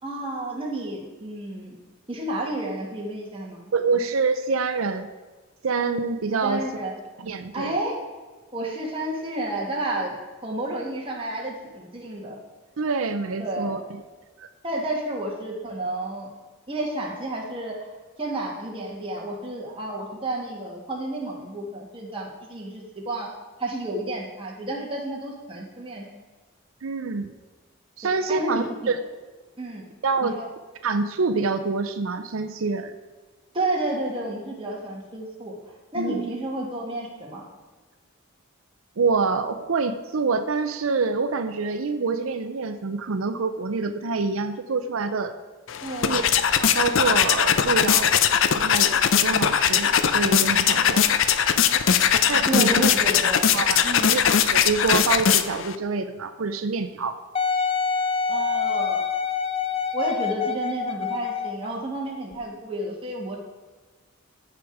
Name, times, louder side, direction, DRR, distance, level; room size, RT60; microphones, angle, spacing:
voice 1, 0.0-1.8 2.1-3.7 6.4-6.9 7.5-7.9 8.5-10.2 10.4-12.4 13.4-13.8 14.6-16.3 16.7-17.9 18.2-23.3 23.6-26.1 28.3-28.6 29.6-29.8 30.2-30.5 33.5-35.5 35.9-37.5 45.8-46.4 52.5-53.6 53.8-54.1 58.3-59.0 59.9-63.4, right 1 dB, 25° right, -2 dB, 2.0 m, -31 dB
voice 2, 3.7-5.1 5.6-6.6 7.2-7.8 12.8-13.8 14.4-14.5 26.8-27.3 28.0-29.0 30.0-30.4 30.8-32.9 36.0-36.3 39.0-45.3 46.0-46.2 46.5-48.1 48.6-51.0 52.3-52.7 53.5-57.2, right 4 dB, 85° right, 8 dB, 0.6 m, -26 dB
sound 1, 45.7-55.8, left 8 dB, 70° left, 0.5 m, -20 dB
Wind instrument woodwind instrument, 57.3-61.7 62.3-62.4, left 6 dB, 25° left, 0.6 m, -26 dB
15.0 x 5.0 x 4.8 m, 1.3 s
head